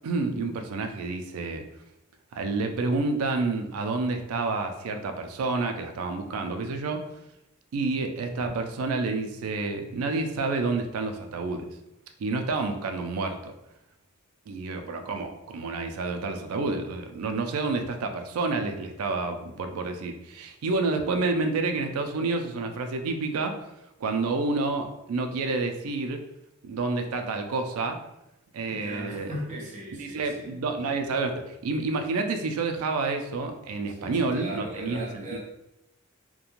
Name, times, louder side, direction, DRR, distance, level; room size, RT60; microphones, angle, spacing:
voice 1, 0.0-1.6 2.3-7.0 7.7-11.7 12.2-13.5 14.5-23.6 24.0-26.2 26.6-28.0 28.5-29.3 30.0-35.4, right 3 dB, 90° right, 5 dB, 0.4 m, -29 dB
voice 2, 28.7-30.6 33.9-35.4, right 1 dB, 35° right, -5 dB, 0.7 m, -38 dB
2.4 x 2.2 x 2.9 m, 0.85 s
head